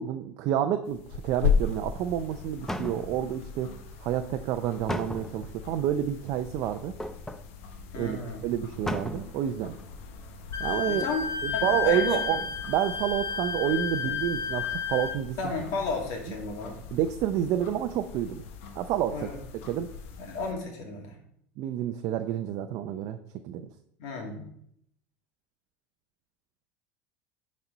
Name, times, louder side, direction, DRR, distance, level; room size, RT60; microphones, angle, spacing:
voice 1, 0.0-3.7 4.0-6.9 8.0-9.8 10.6-11.0 11.4-12.4 12.7-15.4 16.9-18.4 18.8-19.3 19.7-19.9 21.6-23.2 23.4-23.7, right 10 dB, 60° right, 7 dB, 0.5 m, -29 dB
sound 1, 0.9-20.5, left 6 dB, 80° left, 0.9 m, -37 dB
sound 2, 2.3-2.4 2.7-3.4 4.9-5.6 7.0-7.5 8.0-8.1 8.3-8.4 8.9-9.4 9.8-9.9, equal, 5° left, 0.6 m, -35 dB
voice 2, 7.9-8.5 10.8-11.3 11.5-12.4 15.4-16.8 19.1-19.4 20.2-21.2 24.0-24.5, left 3 dB, 65° left, 1 dB, 2.3 m, -33 dB
Wind instrument woodwind instrument, 10.5-15.2, left 7 dB, 40° left, 1.5 m, -31 dB
9.5 x 4.3 x 4.0 m, 0.70 s
supercardioid pair, 100°, 7 cm